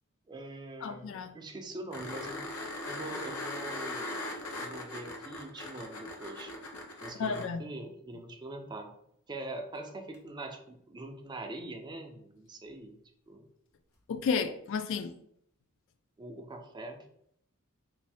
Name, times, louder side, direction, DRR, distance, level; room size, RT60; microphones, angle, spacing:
voice 1, 0.3-2.5 2.9-4.2 4.5-6.5 7.0-8.9 9.3-13.0 13.3-13.5 16.2-17.1, right 2 dB, 20° right, 0.4 m, -43 dB
voice 2, 0.8-1.4 7.2-7.6 14.1-15.1, left 5 dB, 60° left, 0.3 m, -32 dB
sound 1, 1.9-7.5 10.1-10.2, left 2 dB, 80° left, 0.8 m, -39 dB
3.0 x 2.6 x 3.3 m
head